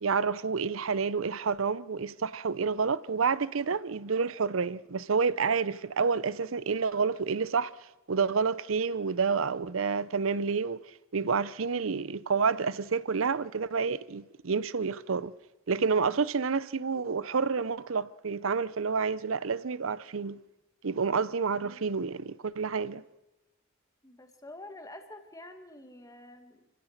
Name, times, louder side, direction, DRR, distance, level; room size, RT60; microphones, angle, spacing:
voice 1, 0.0-7.7 8.1-10.8 11.1-15.3 15.7-20.4 20.8-23.0, right 5 dB, 70° right, 0.6 m, -29 dB
voice 2, 21.1-22.0 24.0-26.7, left 1 dB, 15° left, 1.7 m, -49 dB
28.5 x 16.0 x 6.6 m
head